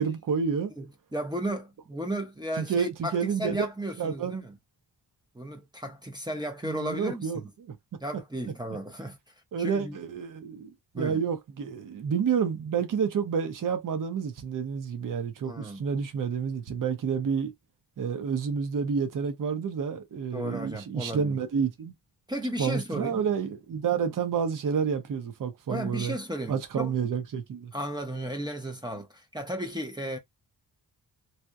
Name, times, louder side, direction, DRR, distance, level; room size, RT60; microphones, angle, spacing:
voice 1, 0.0-0.7 2.6-3.7 4.0-4.5 6.6-7.7 9.5-17.5 18.0-21.9 22.6-26.2 26.5-27.7, right 6 dB, 50° right, 0.6 m, -29 dB
voice 2, 0.8-4.5 5.3-7.5 8.0-9.2 9.6-10.0 10.9-11.2 15.5-15.8 20.3-21.4 22.3-23.2 25.7-26.9 27.7-30.2, right 1 dB, 10° right, 0.5 m, -34 dB
2.8 x 2.0 x 2.2 m
wide cardioid pair, 110°, 43 cm